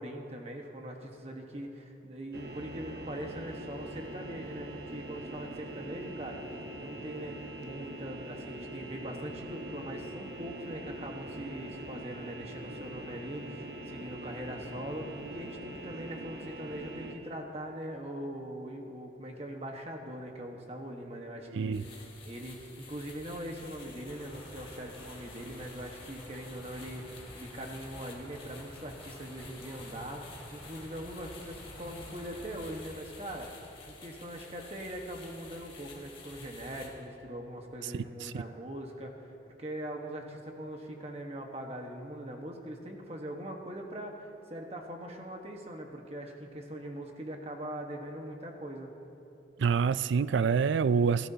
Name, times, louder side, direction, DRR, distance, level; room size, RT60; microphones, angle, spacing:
voice 1, 0.0-6.4 6.8-30.2 30.5-33.5 33.9-39.3 39.6-48.9, right 1 dB, 35° right, 1.3 m, -41 dB
sound 1, 2.3-17.2, right 1 dB, 65° right, 1.0 m, -43 dB
sound 2, 21.7-36.9, left 3 dB, 30° left, 2.2 m, -51 dB
sound 3, 24.1-32.8, equal, 10° right, 3.0 m, -51 dB
voice 2, 49.6-51.3, right 6 dB, 90° right, 0.4 m, -26 dB
28.5 x 13.0 x 2.8 m
head